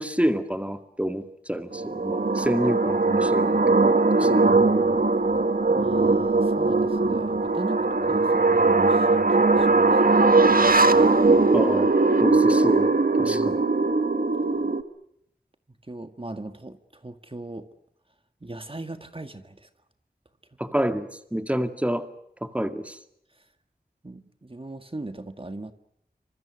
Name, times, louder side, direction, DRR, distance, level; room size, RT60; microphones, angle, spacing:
voice 1, 0.0-3.6 4.2-4.3 11.5-11.9 12.2-13.6 20.6-22.1 22.4-23.0, equal, 10° right, 8 dB, 2.1 m, -27 dB
sound 1, 1.7-14.8, right 3 dB, 60° right, 1.7 m, -20 dB
voice 2, 4.2-5.1 5.7-10.9 13.2-13.6 15.9-17.7 18.4-19.7 23.3-23.5 24.0-25.7, right 2 dB, 35° right, 8 dB, 1.8 m, -39 dB
28.0 x 26.0 x 6.4 m, 0.75 s
wide cardioid pair, 55°, 17 cm